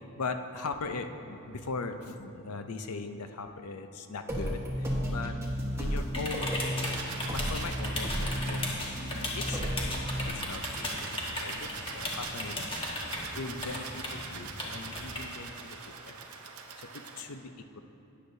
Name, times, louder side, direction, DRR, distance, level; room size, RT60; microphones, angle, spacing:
voice 1, 0.2-4.6 5.1-5.3 5.8-6.7 7.3-9.1 9.5-9.7 10.3-10.9 11.3-12.7 13.3-15.5 17.2-17.5, left 4 dB, 90° left, 7 dB, 0.6 m, -39 dB
sound 1, 4.3-10.3, equal, 15° right, 1.3 m, -33 dB
sound 2, 5.7-15.2, left 1 dB, 25° left, 1.3 m, -37 dB
sound 3, 6.8-17.2, right 5 dB, 85° right, 0.8 m, -44 dB
13.0 x 9.6 x 2.7 m, 3.0 s
head